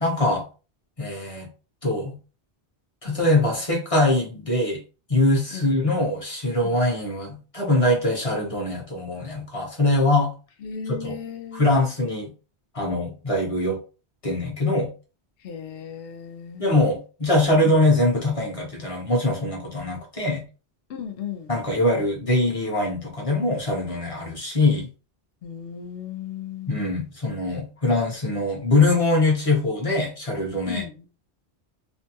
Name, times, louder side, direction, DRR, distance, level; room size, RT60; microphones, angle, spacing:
voice 1, 0.0-0.5 1.0-1.5 1.8-2.2 3.0-4.8 5.1-10.3 10.9-11.2 11.5-12.3 12.7-13.8 14.2-14.9 16.6-20.4 21.5-24.9 26.7-30.8, left 2 dB, 35° left, 0.9 m, -23 dB
voice 2, 10.6-11.7 15.4-16.7 17.6-17.7 20.9-21.5 25.4-26.9 30.7-31.1, left 8 dB, 65° left, 0.7 m, -35 dB
2.6 x 2.2 x 2.8 m
omnidirectional pair, 1.1 m